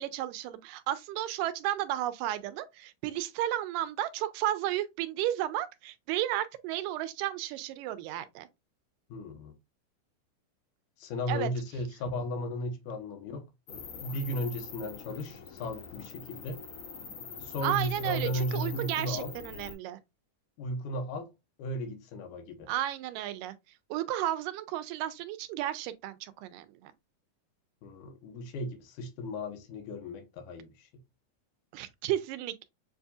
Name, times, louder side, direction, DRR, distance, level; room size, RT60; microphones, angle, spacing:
voice 1, 0.0-8.5 11.3-11.5 17.6-20.0 22.7-23.5 23.9-26.9 31.7-32.7, right 13 dB, 90° right, 2.2 m, -33 dB
voice 2, 9.1-9.5 11.0-16.6 17.4-19.3 20.6-21.3 21.6-22.7 27.8-30.9, left 1 dB, 75° left, 2.4 m, -35 dB
sound 1, 13.7-19.7, left 6 dB, 55° left, 2.3 m, -44 dB
7.3 x 2.7 x 2.3 m
omnidirectional pair, 3.8 m